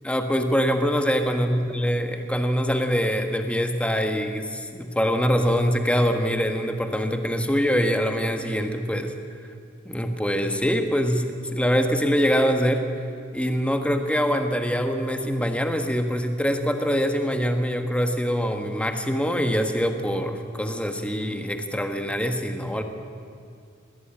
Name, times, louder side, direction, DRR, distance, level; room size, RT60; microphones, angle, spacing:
voice 1, 0.0-9.1 9.8-12.8 13.3-22.8, equal, 5° left, 6 dB, 1.4 m, -24 dB
21.0 x 17.5 x 8.7 m, 2.3 s
head